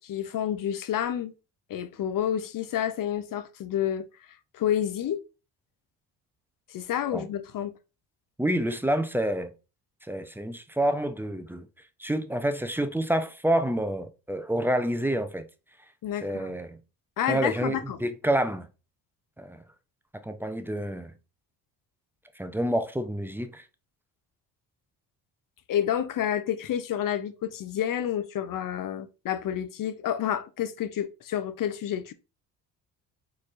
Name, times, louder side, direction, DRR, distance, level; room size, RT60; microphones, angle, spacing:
voice 1, 0.0-1.3 1.7-4.1 4.5-5.2 6.7-7.7 16.0-16.5 17.2-18.0 25.7-32.1, left 10 dB, 45° left, 0.6 m, -29 dB
voice 2, 8.4-9.5 10.1-11.7 12.0-15.4 16.2-16.8 17.3-18.7 19.4-19.6 20.2-21.1 22.4-23.6, right 1 dB, 5° right, 0.4 m, -28 dB
4.2 x 3.3 x 2.4 m
hypercardioid pair, 55°, 48 cm